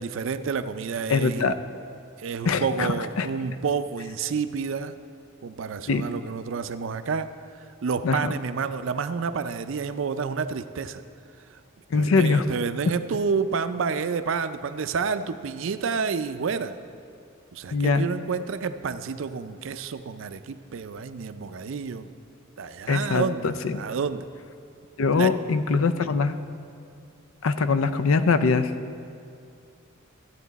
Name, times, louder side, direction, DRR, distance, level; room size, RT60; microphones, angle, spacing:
voice 1, 0.0-1.5 2.2-4.9 5.4-7.3 7.6-11.0 11.9-16.8 17.5-22.1 22.6-23.5 23.8-24.3 25.1-25.3, right 5 dB, 70° right, 11 dB, 0.4 m, -29 dB
voice 2, 1.1-1.5 2.5-3.3 5.9-6.1 8.0-8.3 11.9-12.5 17.7-18.1 22.9-23.8 25.0-26.4 27.4-28.7, left 4 dB, 90° left, 12 dB, 0.5 m, -23 dB
13.0 x 8.4 x 4.0 m, 2.4 s
head